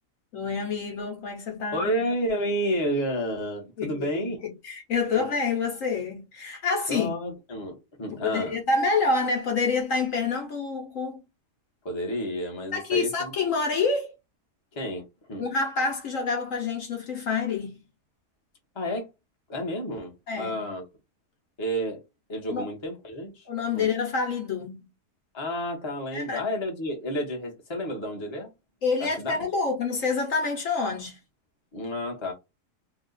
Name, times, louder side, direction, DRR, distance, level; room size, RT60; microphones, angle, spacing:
voice 1, 0.3-1.8 3.8-7.1 8.1-11.2 12.7-14.1 15.4-17.8 20.3-20.6 22.5-22.7 23.5-24.9 26.1-26.4 28.8-31.2, left 4 dB, 60° left, 1.1 m, -27 dB
voice 2, 1.7-4.4 5.1-5.2 6.9-8.6 11.8-13.3 14.7-15.5 18.7-19.1 19.5-20.9 21.6-22.0 22.3-23.5 23.7-23.9 25.3-28.5 29.0-29.4 31.7-32.3, equal, 25° left, 0.8 m, -30 dB
2.8 x 2.3 x 3.8 m
omnidirectional pair, 1.7 m